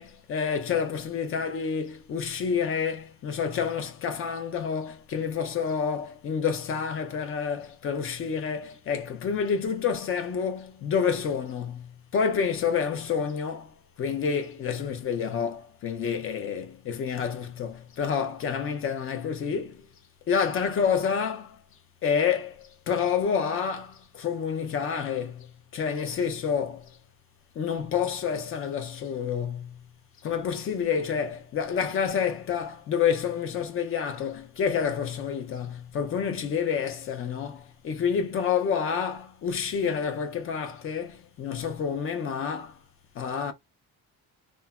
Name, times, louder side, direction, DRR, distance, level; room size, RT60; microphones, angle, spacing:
voice 1, 0.0-19.9 20.3-21.6 22.0-27.0 27.6-29.8 30.2-42.8 43.2-43.5, left 6 dB, 40° left, 0.5 m, -29 dB
3.2 x 2.1 x 2.2 m
cardioid pair, 160°, 34 cm